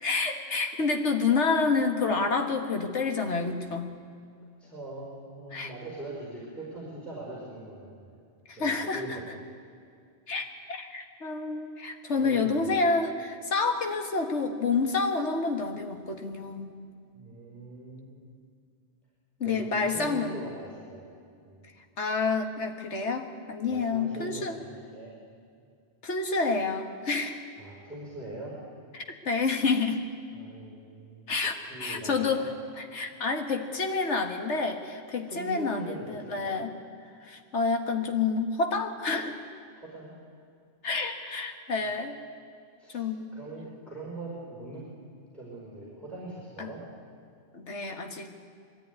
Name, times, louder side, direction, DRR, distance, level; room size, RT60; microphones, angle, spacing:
voice 1, 0.0-3.9 5.5-5.7 8.5-9.0 10.3-16.7 19.4-20.4 22.0-24.6 26.0-27.4 28.9-30.0 31.3-32.4 32.8-36.8 37.2-39.4 40.8-42.2 42.9-43.3 46.6-46.7 47.5-48.3, left 4 dB, 80° left, 4 dB, 1.9 m, -28 dB
voice 2, 4.6-8.1 8.6-9.2 12.2-12.7 17.1-18.2 19.4-21.1 21.4-21.6 23.6-25.1 27.6-28.5 30.3-31.3 31.6-32.5 32.9-33.0 35.3-36.6 39.7-40.1 41.7-41.9 42.8-43.0 43.3-44.9 45.3-46.8, right 2 dB, ahead, -6 dB, 5.1 m, -41 dB
21.5 x 14.0 x 9.7 m, 2.3 s
omnidirectional pair, 1.2 m